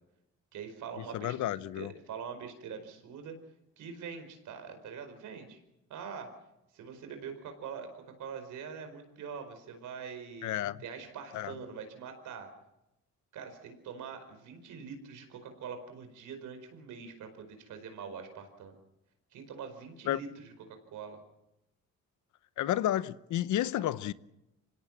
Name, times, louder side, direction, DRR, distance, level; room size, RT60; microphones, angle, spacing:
voice 1, 0.5-3.4 3.8-5.6 5.9-6.3 6.7-10.5 10.8-12.5 13.3-18.8 19.3-21.2, right 6 dB, 80° right, 4.9 m, -44 dB
voice 2, 1.1-1.9 10.4-10.8 11.3-11.5 20.1-20.2 22.6-24.1, left 12 dB, 75° left, 0.9 m, -31 dB
25.5 x 17.5 x 7.4 m
cardioid pair, 90°, 30 cm